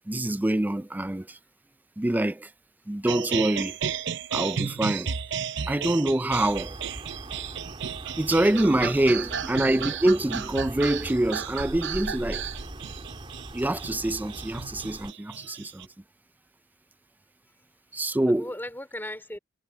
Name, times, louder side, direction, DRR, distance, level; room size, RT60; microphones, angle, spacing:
voice 1, 0.1-1.4 2.0-2.5 2.9-3.8 4.3-5.1 5.7-6.8 8.2-12.5 13.5-15.9 17.9-18.4, right 1 dB, 10° right, 0.4 m, -25 dB
sound 1, 3.1-15.8, right 8 dB, 60° right, 0.7 m, -33 dB
sound 2, 6.3-15.1, right 1 dB, 25° right, 3.3 m, -41 dB
voice 2, 8.8-9.5 18.1-19.4, left 1 dB, 10° left, 3.4 m, -39 dB
head